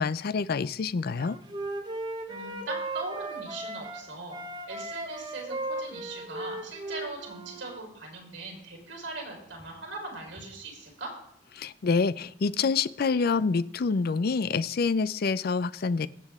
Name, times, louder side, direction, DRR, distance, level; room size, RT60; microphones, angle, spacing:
voice 1, 0.0-1.4 11.6-16.1, left 4 dB, 55° left, 17 dB, 0.5 m, -27 dB
Wind instrument woodwind instrument, 1.1-4.0 4.3-7.8, right 2 dB, 25° right, 1.4 m, -37 dB
voice 2, 2.3-4.4 4.7-11.1, right 2 dB, 70° right, -1 dB, 4.5 m, -40 dB
22.5 x 7.6 x 3.6 m, 0.75 s
head